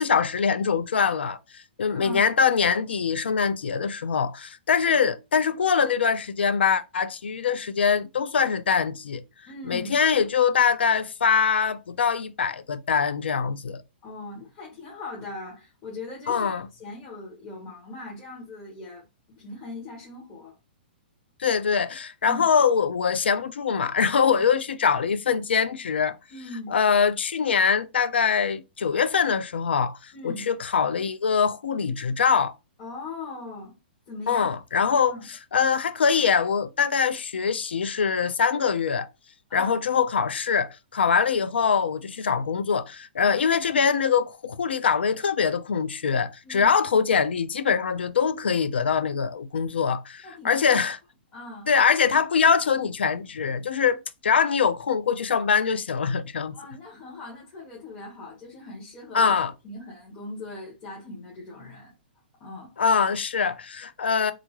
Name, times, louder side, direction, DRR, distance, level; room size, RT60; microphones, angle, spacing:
voice 1, 0.0-9.2 9.6-13.8 16.3-16.6 21.4-26.2 26.7-32.6 34.3-39.1 39.5-51.0 51.7-54.0 54.2-56.6 59.1-59.5 62.8-64.3, left 6 dB, 90° left, 0.4 m, -23 dB
voice 2, 1.9-2.3 9.4-10.0 14.0-16.5 16.8-20.5 22.3-22.4 26.3-26.8 30.1-30.5 32.8-33.7 34.1-34.5 35.1-35.3 39.5-39.8 43.2-43.4 46.4-46.7 50.2-50.7 51.3-51.7 56.5-59.3 59.6-61.9 62.4-62.7, left 2 dB, 30° left, 1.5 m, -40 dB
3.6 x 2.4 x 3.0 m
hypercardioid pair, 140°, 6 cm